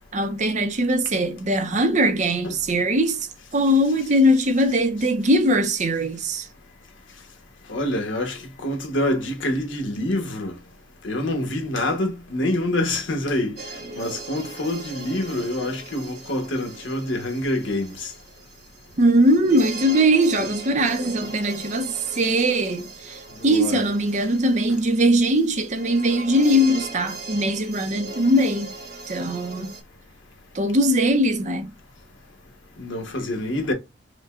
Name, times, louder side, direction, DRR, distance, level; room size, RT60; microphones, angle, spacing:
voice 1, 0.1-3.3 3.5-6.5 19.0-28.7 29.1-29.7 30.5-31.6, equal, 40° right, 0.6 m, -21 dB
voice 2, 7.7-10.6 11.0-13.6 14.0-18.1 20.4-20.5 21.2-21.3 23.4-23.8 32.8-33.7, left 1 dB, 85° left, 1.2 m, -26 dB
sound 1, 13.6-29.8, right 3 dB, 55° right, 1.1 m, -39 dB
5.1 x 2.2 x 2.4 m
head